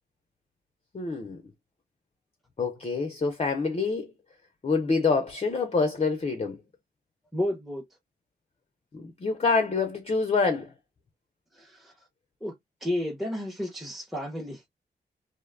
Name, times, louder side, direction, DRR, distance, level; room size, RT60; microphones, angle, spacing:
voice 1, 0.9-1.4 2.6-4.1 4.6-6.6 8.9-10.7, left 4 dB, 35° left, 0.5 m, -26 dB
voice 2, 7.3-7.8 11.5-11.9 12.4-12.5 12.8-14.6, left 1 dB, ahead, 0.7 m, -31 dB
2.6 x 2.1 x 2.4 m
cardioid pair, 60°, 18 cm